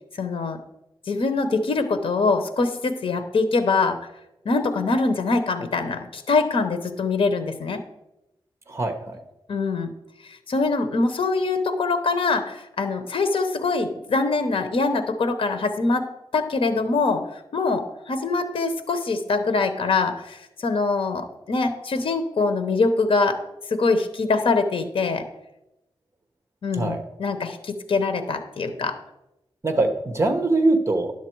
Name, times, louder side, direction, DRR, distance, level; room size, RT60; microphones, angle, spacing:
voice 1, 0.1-0.6 1.1-4.0 4.4-7.8 9.5-9.9 10.2-23.4 23.7-25.2 26.6-29.0, left 3 dB, 75° left, 8 dB, 0.8 m, -24 dB
voice 2, 8.7-9.2 26.7-27.0 29.6-31.1, right 2 dB, 30° right, 6 dB, 1.0 m, -22 dB
10.5 x 7.3 x 4.5 m, 0.90 s
wide cardioid pair, 155°, 9 cm